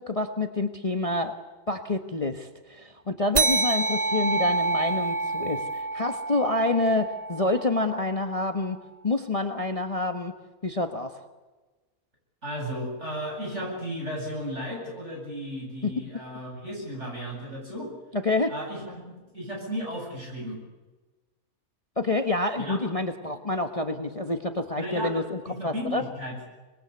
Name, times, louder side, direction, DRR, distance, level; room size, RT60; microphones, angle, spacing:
voice 1, 0.0-1.3 1.7-8.8 9.0-10.3 10.6-11.2 15.8-15.9 18.1-18.5 22.0-26.0, left 2 dB, 25° left, 7 dB, 1.3 m, -27 dB
sound 1, 3.3-8.3, right 3 dB, 35° right, 0.8 m, -28 dB
voice 2, 12.4-17.9 18.5-19.0 19.3-20.6 22.6-22.8 24.8-26.4, equal, 50° right, -1 dB, 8.6 m, -34 dB
25.5 x 21.0 x 8.4 m, 1.2 s
omnidirectional pair, 1.5 m